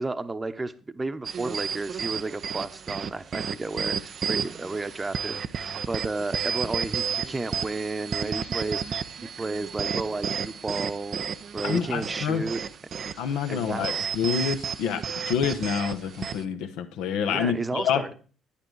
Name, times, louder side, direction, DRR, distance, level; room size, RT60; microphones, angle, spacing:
voice 1, 0.0-5.4 5.9-11.2 11.5-12.6 13.5-14.0 17.2-18.1, right 3 dB, 20° right, 11 dB, 1.0 m, -32 dB
sound 1, 1.2-16.4, right 7 dB, 50° right, 0.6 m, -32 dB
voice 2, 11.6-12.4 13.2-18.1, left 7 dB, 65° left, 7 dB, 1.1 m, -27 dB
10.5 x 10.0 x 4.7 m, 0.37 s
figure-of-eight pair, 45°, 0 cm